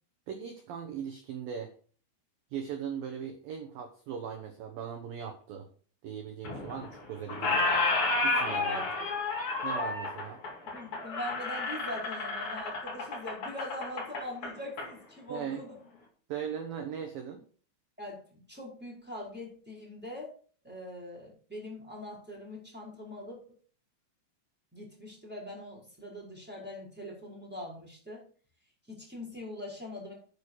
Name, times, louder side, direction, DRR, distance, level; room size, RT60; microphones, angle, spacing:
voice 1, 0.3-1.7 2.5-5.7 6.0-7.8 8.2-8.8 9.6-10.4 15.3-15.6 16.3-17.4, right 7 dB, 90° right, 4 dB, 2.0 m, -39 dB
Squeak, 6.4-7.0 7.3-14.9, left 3 dB, 45° left, 1.8 m, -31 dB
voice 2, 8.6-9.1 10.7-15.7 18.0-20.3 20.6-23.4 24.7-28.3 28.9-30.1, left 1 dB, ahead, -4 dB, 4.4 m, -42 dB
9.9 x 9.0 x 4.8 m, 0.43 s
omnidirectional pair, 6.0 m